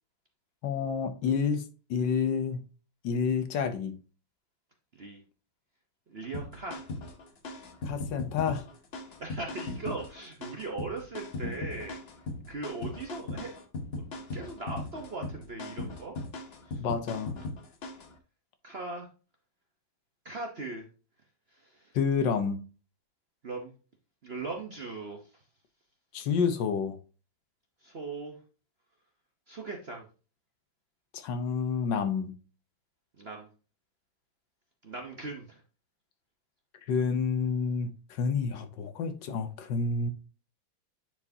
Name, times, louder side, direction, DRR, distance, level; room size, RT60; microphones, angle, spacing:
voice 1, 0.6-1.6 1.9-2.6 3.0-3.9 7.8-8.6 16.8-17.3 21.9-22.6 26.1-27.0 31.1-32.3 36.9-40.1, left 6 dB, 70° left, 1.4 m, -29 dB
voice 2, 6.1-6.8 9.2-12.0 12.5-13.5 14.0-16.2 16.7-16.8 18.6-19.1 20.2-20.9 21.5-21.9 23.4-23.7 24.2-25.4 27.8-28.4 29.5-30.1 33.2-33.5 34.8-35.6, right 3 dB, 45° right, 0.9 m, -39 dB
sound 1, 6.3-18.1, left 2 dB, 45° left, 0.8 m, -38 dB
9.7 x 4.7 x 2.7 m
omnidirectional pair, 2.2 m